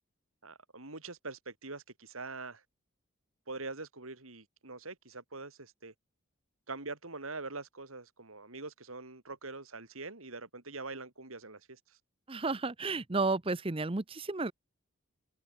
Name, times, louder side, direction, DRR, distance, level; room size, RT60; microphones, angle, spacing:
voice 1, 0.4-2.6 3.5-5.9 6.7-12.0, right 3 dB, 85° right, 3.8 m, -44 dB
voice 2, 12.3-14.5, right 3 dB, 25° right, 0.7 m, -32 dB
head